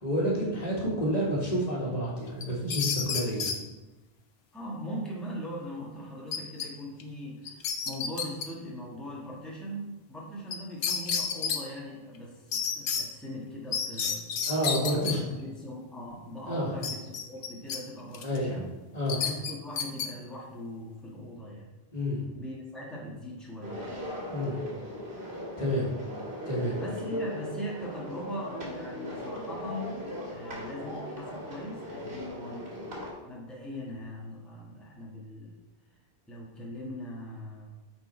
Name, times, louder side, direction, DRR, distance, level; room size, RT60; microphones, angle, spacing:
voice 1, 0.0-3.5 14.5-15.2 16.5-16.7 18.2-18.6 18.9-19.2 21.9-22.2 24.3-24.6 25.6-25.9 26.5-26.8, equal, 40° left, -5 dB, 1.9 m, -29 dB
sound 1, 2.4-3.6 6.3-6.7 7.0-7.1 7.5-8.5 10.5-10.6 10.8-11.6 12.5-13.0 13.7-15.1 16.8-17.8 18.1-18.4 19.1-20.1, left 6 dB, 80° left, 1.0 m, -30 dB
voice 2, 4.5-14.2 14.7-18.7 19.1-21.7 22.3-23.9 26.7-32.9 33.2-35.6 36.3-37.7, equal, ahead, -4 dB, 1.5 m, -40 dB
sound 2, 23.6-33.1, equal, 80° right, 2.3 m, -38 dB
9.5 x 4.4 x 4.3 m, 1.1 s
omnidirectional pair, 1.0 m